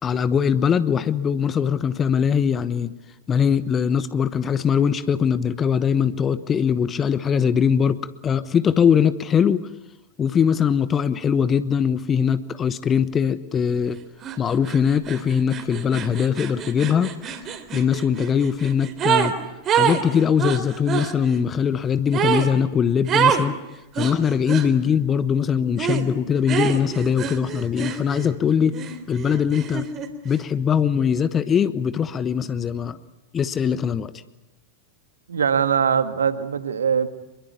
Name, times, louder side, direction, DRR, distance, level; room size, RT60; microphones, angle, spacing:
voice 1, 0.0-2.9 3.3-9.7 10.2-14.0 14.4-17.2 17.7-19.3 19.7-23.5 24.0-28.8 29.1-29.9 30.2-33.0 33.3-34.1, left 7 dB, 25° left, 14 dB, 1.1 m, -21 dB
sound 1, 14.2-14.4 14.6-19.3 19.6-21.1 22.1-22.5 23.1-23.5 23.9-24.7 25.8-26.1 26.5-28.3 28.7-30.1, right 8 dB, 30° right, 3.5 m, -25 dB
voice 2, 35.3-37.1, right 7 dB, 70° right, 11 dB, 1.8 m, -21 dB
26.0 x 22.5 x 8.4 m, 0.98 s
figure-of-eight pair, 90°, 0 cm